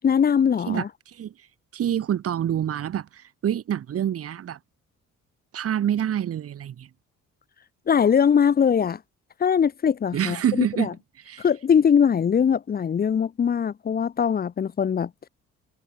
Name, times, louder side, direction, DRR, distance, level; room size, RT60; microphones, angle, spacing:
voice 1, 0.0-0.9 7.9-9.0 9.4-10.9 11.4-15.1, left 7 dB, 30° left, 0.6 m, -21 dB
voice 2, 1.7-4.6 5.5-6.9 10.1-10.9 11.3-11.4, right 10 dB, 50° right, 1.0 m, -26 dB
cardioid pair, 90°, 30 cm